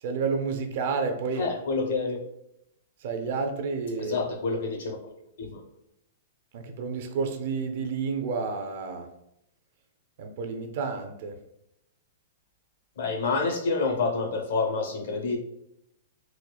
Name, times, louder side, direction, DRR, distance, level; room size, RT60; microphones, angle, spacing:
voice 1, 0.0-1.5 3.0-4.2 6.5-9.1 10.2-11.4, right 4 dB, 50° right, 5 dB, 0.5 m, -30 dB
voice 2, 1.4-2.2 4.0-5.1 5.4-5.6 13.0-15.4, left 4 dB, 70° left, 3 dB, 0.8 m, -28 dB
4.2 x 2.4 x 2.3 m, 0.80 s
hypercardioid pair, 165°, 0 cm